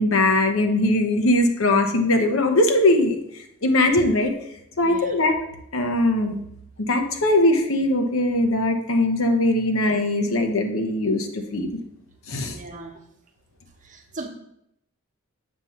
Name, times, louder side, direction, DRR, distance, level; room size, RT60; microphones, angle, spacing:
voice 1, 0.0-3.2 3.6-4.3 4.8-5.4 5.7-6.4 6.8-11.8 12.3-12.5, left 1 dB, 75° left, 5 dB, 0.9 m, -20 dB
voice 2, 4.8-5.1 12.4-13.0 13.8-14.3, right 2 dB, 40° right, 3 dB, 0.9 m, -38 dB
7.4 x 3.1 x 5.7 m, 0.78 s
head